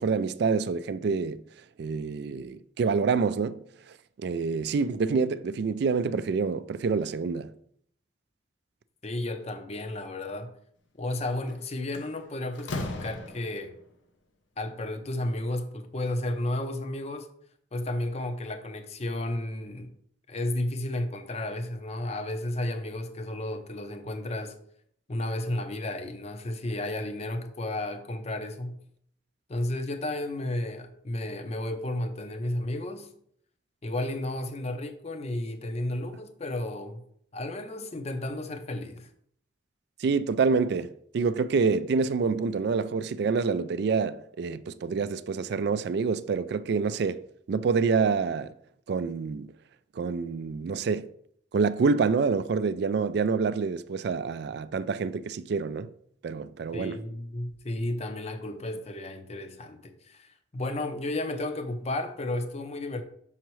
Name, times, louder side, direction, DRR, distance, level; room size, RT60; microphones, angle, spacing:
voice 1, 0.0-1.4 1.8-3.6 4.2-7.5 40.0-47.2 47.5-48.5 48.9-49.5 50.0-51.1 51.5-55.9 56.2-57.0, right 5 dB, 60° right, 0.3 m, -27 dB
voice 2, 9.0-10.5 11.0-13.7 14.6-17.3 17.7-19.9 20.3-24.6 25.1-28.8 29.5-33.1 33.8-37.0 37.3-39.1 56.7-63.0, left 1 dB, 35° left, 0.6 m, -33 dB
Slam, 11.3-11.5 11.9-13.8, left 2 dB, 85° left, 0.7 m, -37 dB
6.0 x 5.6 x 3.1 m
head